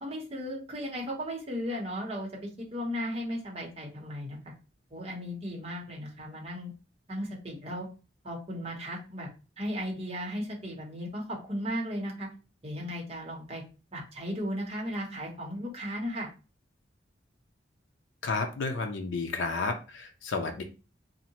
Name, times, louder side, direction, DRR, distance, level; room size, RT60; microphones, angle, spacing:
voice 1, 0.0-4.4 4.9-6.7 7.1-7.9 8.2-9.3 9.6-12.3 12.6-13.6 13.9-16.3, equal, 35° right, -2 dB, 0.8 m, -36 dB
voice 2, 18.2-20.6, left 3 dB, 75° left, 4 dB, 0.5 m, -31 dB
2.7 x 2.1 x 2.8 m, 0.32 s
head